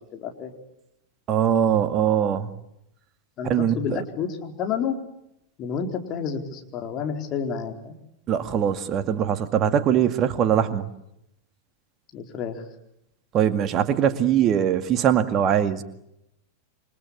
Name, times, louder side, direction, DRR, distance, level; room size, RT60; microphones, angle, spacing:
voice 1, 0.1-0.5 3.4-5.0 5.6-8.0 12.1-12.6, left 7 dB, 35° left, 4 dB, 4.4 m, -30 dB
voice 2, 1.3-2.5 3.5-4.0 8.3-10.9 13.3-15.8, right 9 dB, 30° right, 9 dB, 2.1 m, -22 dB
28.5 x 25.0 x 8.4 m, 0.83 s
figure-of-eight pair, 90°, 0 cm